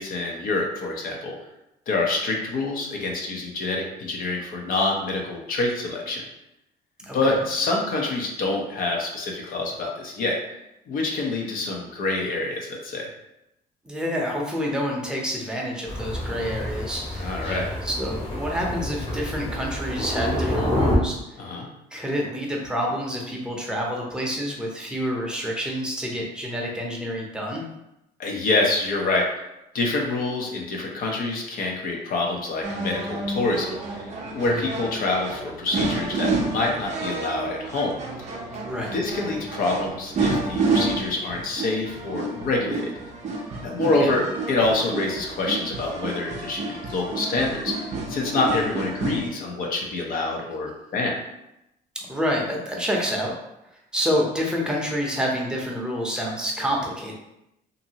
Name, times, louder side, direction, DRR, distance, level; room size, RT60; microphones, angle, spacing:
voice 1, 0.0-1.3 1.9-6.2 7.1-10.4 10.9-13.1 17.2-17.7 21.4-21.7 28.2-29.3 29.7-34.1 34.3-38.0 38.9-42.9 43.6-51.2, left 2 dB, 60° left, 0 dB, 0.7 m, -26 dB
voice 2, 7.0-7.4 13.8-17.4 17.8-21.2 21.9-27.7 34.4-34.7 38.6-38.9 43.8-44.2 52.1-53.3 53.9-57.1, equal, 5° right, -2 dB, 0.7 m, -28 dB
Thunder, 15.9-21.0, left 1 dB, 35° left, 1.1 m, -28 dB
sound 1, 32.6-49.3, right 3 dB, 45° right, 0.5 m, -30 dB
2.7 x 2.6 x 2.8 m, 0.88 s
cardioid pair, 110°, 17 cm